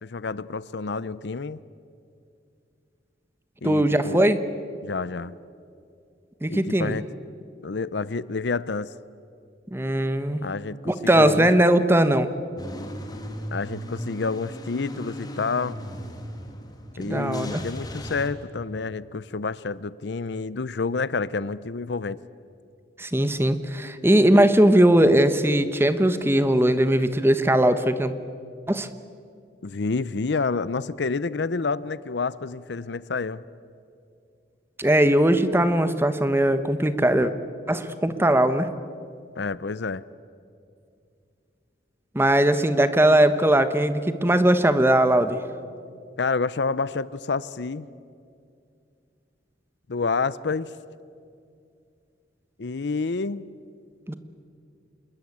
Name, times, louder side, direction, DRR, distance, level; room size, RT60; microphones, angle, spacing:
voice 1, 0.0-1.6 3.6-4.3 4.8-5.4 6.5-7.1 7.6-8.9 10.4-11.5 13.5-15.8 17.0-22.2 29.6-33.4 39.4-40.0 46.2-47.9 49.9-50.7 52.6-53.4, left 4 dB, 70° left, 18 dB, 0.6 m, -29 dB
voice 2, 3.6-4.4 6.4-7.0 9.7-10.4 10.8-12.3 17.1-17.6 23.0-28.1 28.7-28.9 34.8-37.3 37.7-38.7 42.1-45.4 54.1-54.2, right 1 dB, 15° right, 11 dB, 1.1 m, -20 dB
Car / Engine starting / Idling, 12.6-18.3, equal, 25° left, 2.3 m, -37 dB
26.5 x 21.0 x 8.6 m, 2.4 s
head